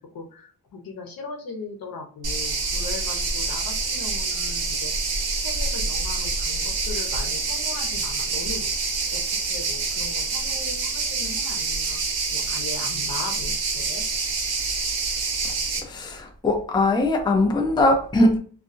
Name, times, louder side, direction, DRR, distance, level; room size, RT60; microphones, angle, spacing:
voice 1, 0.0-8.7 9.1-12.0 12.3-14.1, left 3 dB, 65° left, 0.9 m, -38 dB
sound 1, 2.2-15.8, right 4 dB, 90° right, 0.9 m, -27 dB
voice 2, 15.8-18.4, left 2 dB, 10° left, 0.5 m, -21 dB
2.6 x 2.5 x 2.4 m
wide cardioid pair, 130°, 37 cm